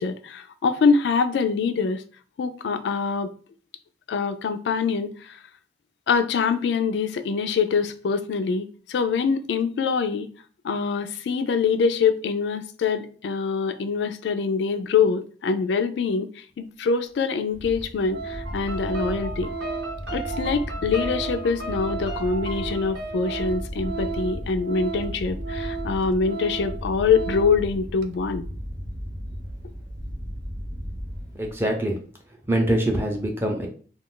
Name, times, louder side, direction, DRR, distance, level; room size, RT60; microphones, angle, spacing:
voice 1, 0.0-2.0 2.4-3.3 4.1-5.4 6.1-10.3 10.6-19.5 20.1-28.5, left 5 dB, 85° left, 9 dB, 0.3 m, -24 dB
Organ, 17.0-17.1 17.7-17.8 18.1-27.7 28.0-28.2, right 5 dB, 75° right, 0.4 m, -35 dB
sound 1, 17.5-31.8, equal, 50° right, 0.8 m, -35 dB
sound 2, 18.4-23.5, right 1 dB, 90° right, 0.9 m, -36 dB
voice 2, 31.3-32.0 32.5-33.7, right 1 dB, 15° right, 1 dB, 0.5 m, -24 dB
2.4 x 2.3 x 3.6 m, 0.42 s
head